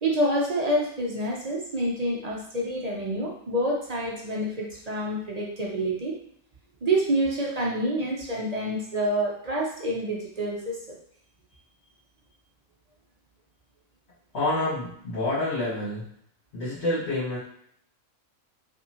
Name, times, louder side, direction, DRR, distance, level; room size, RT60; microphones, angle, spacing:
voice 1, 0.0-6.1 6.8-11.0, right 1 dB, 40° right, -2 dB, 0.6 m, -27 dB
voice 2, 14.3-16.0 16.5-17.4, left 2 dB, 50° left, -11 dB, 1.7 m, -28 dB
5.3 x 2.7 x 2.8 m, 0.67 s
omnidirectional pair, 1.4 m